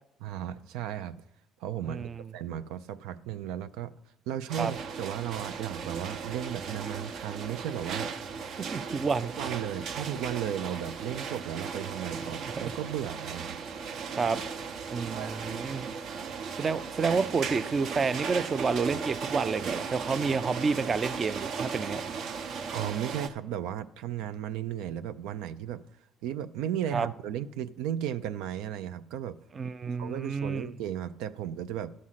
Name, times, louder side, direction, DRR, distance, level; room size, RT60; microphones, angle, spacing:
voice 1, 0.2-1.2 1.6-3.9 4.3-8.1 9.4-13.6 15.0-15.4 22.7-25.8 26.2-29.4 30.0-31.9, right 10 dB, 90° right, 11 dB, 0.4 m, -35 dB
voice 2, 1.8-2.3 4.6-4.7 8.6-9.5 12.6-12.7 14.2-14.4 14.9-15.9 16.6-22.0 26.9-27.1 29.5-30.7, right 5 dB, 30° right, 14 dB, 0.4 m, -29 dB
sound 1, 4.5-23.3, right 5 dB, 60° right, 0.8 m, -37 dB
12.5 x 6.2 x 5.7 m, 0.80 s
cardioid pair, 120°, 0 cm